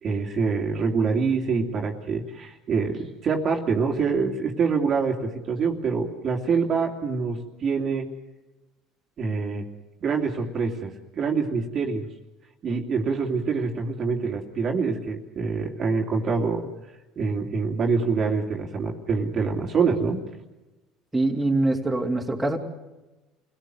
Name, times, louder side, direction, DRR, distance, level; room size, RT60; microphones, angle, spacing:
voice 1, 0.0-8.1 9.2-9.7 10.0-12.1 12.6-16.7 17.2-20.2, right 5 dB, 40° right, 1 dB, 2.8 m, -25 dB
voice 2, 21.1-22.6, right 2 dB, 5° right, 0 dB, 3.4 m, -24 dB
27.5 x 18.0 x 7.8 m, 1.1 s
supercardioid pair, 110°, 0 cm